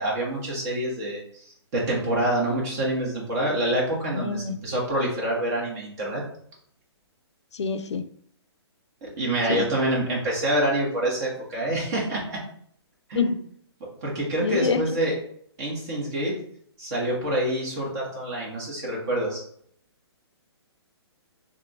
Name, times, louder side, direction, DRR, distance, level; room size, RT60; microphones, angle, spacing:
voice 1, 0.0-6.2 9.0-12.4 13.1-13.3 14.0-15.2 15.6-16.4 16.8-19.4, right 1 dB, 35° right, -4 dB, 1.4 m, -26 dB
voice 2, 4.1-4.6 7.6-8.0 9.5-9.7 13.1-13.4 14.4-14.8, left 5 dB, 85° left, 9 dB, 0.4 m, -25 dB
3.7 x 2.6 x 2.4 m, 0.64 s
hypercardioid pair, 140°, 14 cm